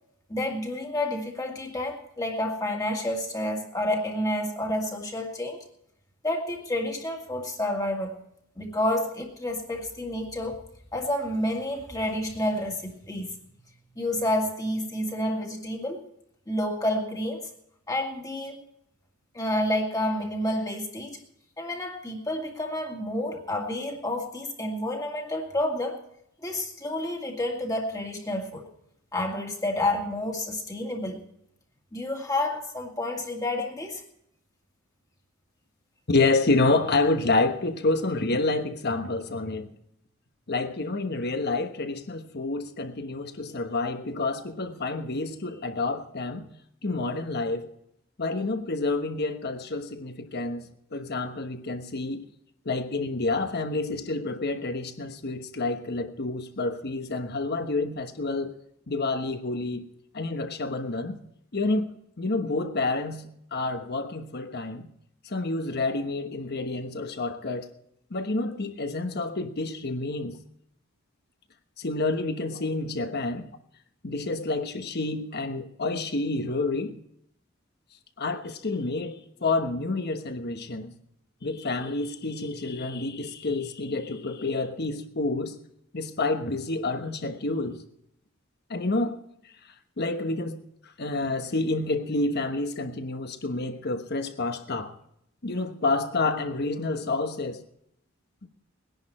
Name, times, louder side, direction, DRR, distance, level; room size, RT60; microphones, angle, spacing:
voice 1, 0.3-5.6 6.2-8.1 8.6-10.6 10.9-13.3 14.0-16.1 16.5-17.5 17.9-18.7 19.3-21.2 21.6-26.0 26.4-28.7 29.1-31.2 31.9-34.0, left 1 dB, 15° left, 2.0 m, -29 dB
voice 2, 36.1-39.7 40.5-46.5 46.8-47.7 48.2-52.2 52.6-58.6 58.9-59.9 60.1-61.2 61.5-64.9 65.2-67.7 68.1-70.4 71.8-73.5 74.0-77.0 78.2-80.9 81.4-85.6 85.9-87.8 88.7-89.2 90.0-94.9 95.4-97.6 98.4-98.5, left 3 dB, 50° left, 1.2 m, -28 dB
20.0 x 10.5 x 4.3 m
head